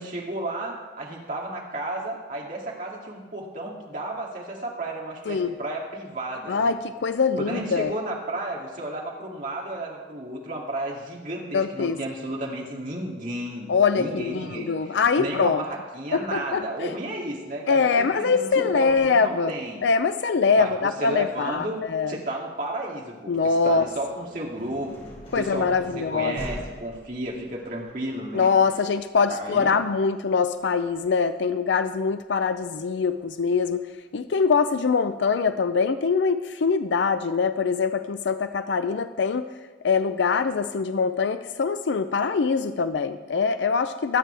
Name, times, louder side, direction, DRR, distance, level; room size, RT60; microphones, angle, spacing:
voice 1, 0.0-6.7 7.4-19.8 20.6-21.8 22.1-23.3 23.6-25.0 25.3-28.5 29.3-29.7, right 1 dB, 45° right, -2 dB, 2.5 m, -33 dB
voice 2, 6.5-7.9 11.5-12.0 13.7-15.6 16.1-16.9 17.7-19.5 19.8-22.1 23.3-23.9 25.3-26.4 28.3-33.9 34.1-39.5 39.8-44.2, left 5 dB, 80° left, 11 dB, 0.5 m, -23 dB
sound 1, 23.5-33.3, equal, 35° left, 4.3 m, -44 dB
23.0 x 9.1 x 3.4 m, 1.4 s
head